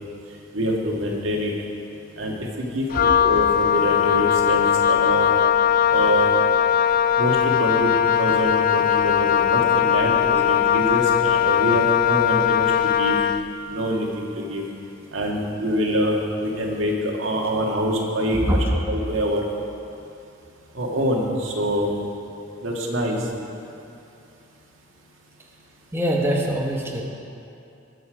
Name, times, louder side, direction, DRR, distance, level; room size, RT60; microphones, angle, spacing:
voice 1, 0.5-1.5 2.2-5.3 5.9-6.3 7.2-13.1 13.7-14.6 15.1-19.4 20.7-21.9 22.6-23.2, equal, 80° right, -1 dB, 1.8 m, -25 dB
Wind instrument woodwind instrument, 2.9-13.5, left 9 dB, 45° left, 0.4 m, -19 dB
voice 2, 18.3-18.7 25.9-27.0, equal, 15° right, -2 dB, 1.2 m, -23 dB
20.0 x 7.0 x 5.0 m, 2.7 s
head